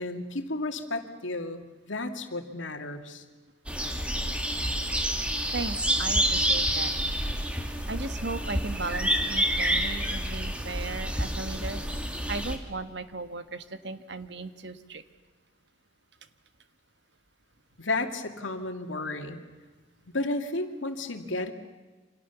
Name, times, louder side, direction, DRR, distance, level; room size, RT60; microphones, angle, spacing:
voice 1, 0.0-3.2 17.8-19.4 20.1-21.5, left 2 dB, 90° left, 6 dB, 2.4 m, -32 dB
sound 1, 3.7-12.6, equal, 5° right, 2.3 m, -28 dB
voice 2, 5.5-6.9 7.9-11.8 12.3-15.0, right 3 dB, 65° right, 10 dB, 1.6 m, -36 dB
29.0 x 26.0 x 7.1 m, 1.3 s
head